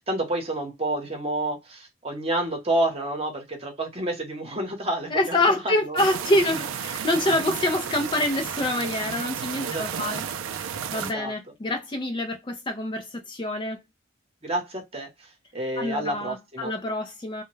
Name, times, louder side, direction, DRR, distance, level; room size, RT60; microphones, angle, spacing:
voice 1, 0.1-5.4 5.6-6.0 9.6-10.2 10.9-11.3 14.4-16.7, right 1 dB, 30° right, 0.9 m, -29 dB
voice 2, 5.1-10.2 10.6-13.8 15.8-17.4, left 1 dB, 25° left, 0.4 m, -26 dB
sound 1, 6.0-11.1, right 8 dB, 80° right, 0.4 m, -32 dB
2.2 x 2.1 x 3.1 m
head